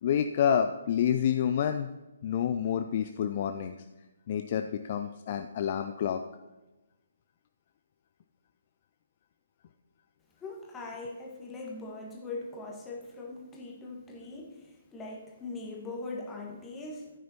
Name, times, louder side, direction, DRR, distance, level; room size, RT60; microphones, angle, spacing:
voice 1, 0.0-1.9 2.2-3.8 4.3-6.2, left 8 dB, 40° left, 7 dB, 0.4 m, -28 dB
voice 2, 10.4-17.1, left 3 dB, 10° left, -1 dB, 1.6 m, -41 dB
14.5 x 9.2 x 3.0 m, 1.1 s
figure-of-eight pair, 135°, 0 cm